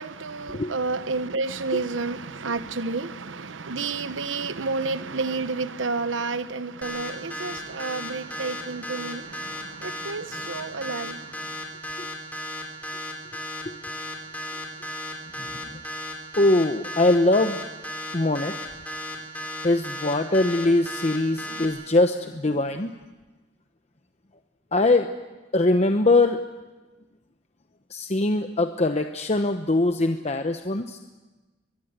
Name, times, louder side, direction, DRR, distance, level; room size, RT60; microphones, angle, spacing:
voice 1, 0.0-11.4, right 3 dB, 85° right, 0.9 m, -30 dB
sound 1, 6.8-21.6, left 1 dB, 10° left, 4.2 m, -34 dB
voice 2, 16.4-17.6 18.1-18.7 19.6-22.9 24.7-25.1 25.5-26.4 27.9-31.0, left 2 dB, 35° left, 0.9 m, -22 dB
23.5 x 21.5 x 8.1 m
head